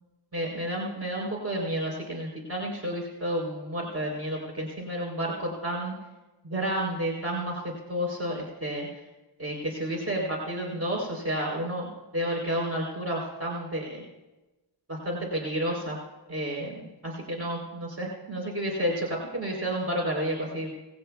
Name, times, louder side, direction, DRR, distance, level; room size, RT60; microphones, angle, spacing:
voice 1, 0.3-5.9 6.4-9.0 9.4-14.0 14.9-16.0 16.3-20.7, equal, 30° right, -1 dB, 3.7 m, -31 dB
19.5 x 17.0 x 2.3 m, 1.1 s
cardioid pair, 40°, 46 cm